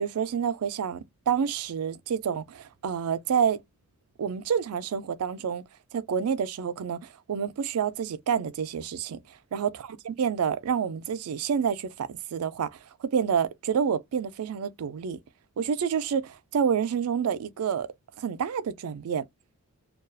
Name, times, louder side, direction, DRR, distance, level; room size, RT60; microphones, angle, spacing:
voice 1, 0.0-3.6 4.2-5.6 5.9-9.2 9.5-9.7 10.1-15.2 15.6-17.9 18.2-19.3, right 7 dB, 80° right, 0.4 m, -28 dB
2.3 x 2.2 x 2.5 m
head